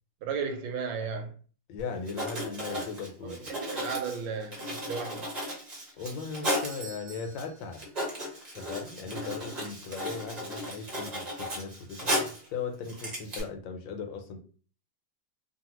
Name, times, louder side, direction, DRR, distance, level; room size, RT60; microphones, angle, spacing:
voice 1, 0.2-1.3 3.2-5.3 9.0-9.3, right 5 dB, 75° right, 1.2 m, -35 dB
voice 2, 1.7-3.4 6.0-7.8 8.5-14.4, left 5 dB, 75° left, 1.3 m, -38 dB
Writing, 2.0-6.8 7.4-7.5 7.7-12.5 12.8-13.4, equal, 30° right, 0.7 m, -35 dB
Doorbell, 6.0-8.5 8.8-8.9 9.6-9.7, right 3 dB, 60° right, 1.1 m, -50 dB
2.7 x 2.7 x 2.9 m
omnidirectional pair, 2.1 m